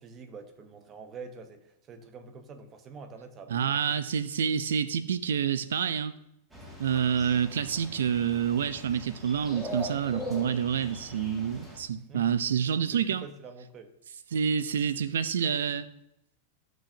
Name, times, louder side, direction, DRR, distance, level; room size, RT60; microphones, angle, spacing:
voice 1, 0.0-1.6 1.9-4.0 12.1-12.3 12.9-13.9, right 4 dB, 30° right, 8 dB, 1.2 m, -46 dB
voice 2, 3.5-6.1 6.8-13.3 14.3-15.9, right 8 dB, 85° right, 15 dB, 0.6 m, -28 dB
sound 1, 6.5-11.8, left 1 dB, 15° right, 2.3 m, -41 dB
14.5 x 6.1 x 2.8 m, 0.82 s
hypercardioid pair, 120°, 0 cm